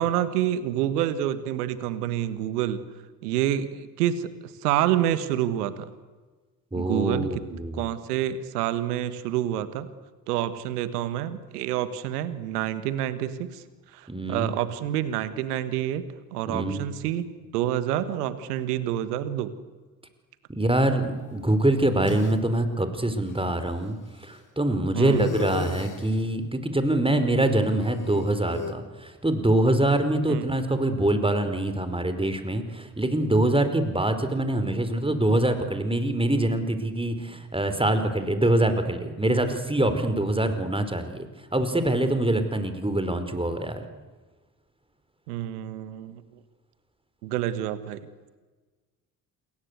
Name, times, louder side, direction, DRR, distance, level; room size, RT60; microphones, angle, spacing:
voice 1, 0.0-2.8 3.2-5.9 6.7-9.9 10.3-13.6 13.9-16.0 16.3-19.5 24.9-25.3 30.3-30.4 45.3-46.2 47.2-48.0, right 11 dB, 80° right, 14 dB, 1.6 m, -28 dB
voice 2, 6.7-7.8 14.1-14.5 16.5-16.9 20.5-41.3 41.5-43.8, right 1 dB, 10° right, 9 dB, 4.8 m, -24 dB
sound 1, 21.2-22.3 23.3-23.4 25.0-26.1 27.4-28.7, left 5 dB, 40° left, 3.4 m, -36 dB
28.0 x 22.0 x 8.2 m, 1.3 s
hypercardioid pair, 40°, 46 cm